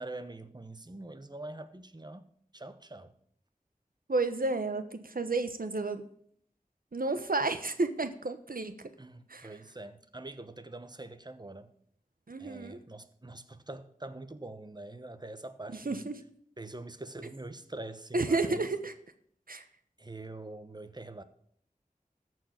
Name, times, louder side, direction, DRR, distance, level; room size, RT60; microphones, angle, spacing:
voice 1, 0.0-2.2 2.5-3.1 9.0-11.7 12.4-16.1 16.6-18.7 20.0-21.2, right 2 dB, 30° right, 1.1 m, -44 dB
voice 2, 4.1-6.1 6.9-8.8 9.3-9.5 12.3-12.8 15.8-16.2 18.1-18.9 19.5-19.6, right 3 dB, 80° right, 1.1 m, -31 dB
14.0 x 4.7 x 8.7 m
wide cardioid pair, 45°, 15 cm